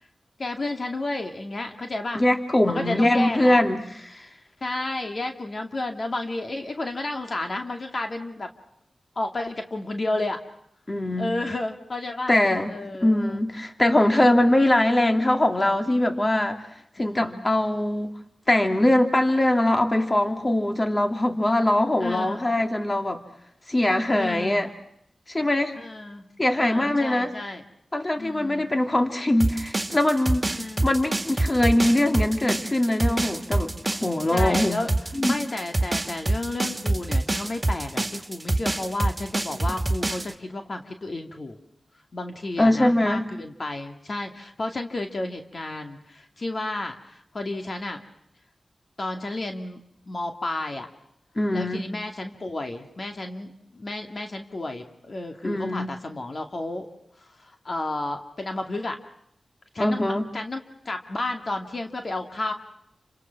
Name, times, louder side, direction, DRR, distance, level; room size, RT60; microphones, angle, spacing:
voice 1, 0.4-2.2 2.6-3.6 4.6-8.5 9.2-10.4 11.2-12.3 12.7-13.1 17.0-17.5 22.0-22.4 24.1-24.7 25.7-26.3 26.6-27.6 28.2-28.7 30.5-30.9 34.3-34.9 35.2-41.6 42.1-48.0 49.0-49.8 50.1-50.9 51.5-56.9 57.4-59.0 59.7-62.5, left 2 dB, 55° left, 4 dB, 2.4 m, -32 dB
voice 2, 2.1-4.3 10.9-11.3 12.3-12.7 13.0-16.7 17.0-18.1 18.5-23.2 23.7-24.7 25.3-25.8 26.4-27.3 27.9-30.4 30.8-34.8 35.1-35.4 42.6-43.3 51.4-51.8 55.4-55.9 59.8-60.3, left 1 dB, 30° left, 5 dB, 2.5 m, -22 dB
sound 1, 29.4-40.3, right 2 dB, 25° right, 2.0 m, -26 dB
29.0 x 26.5 x 6.0 m, 0.75 s
cardioid pair, 55°, 0 cm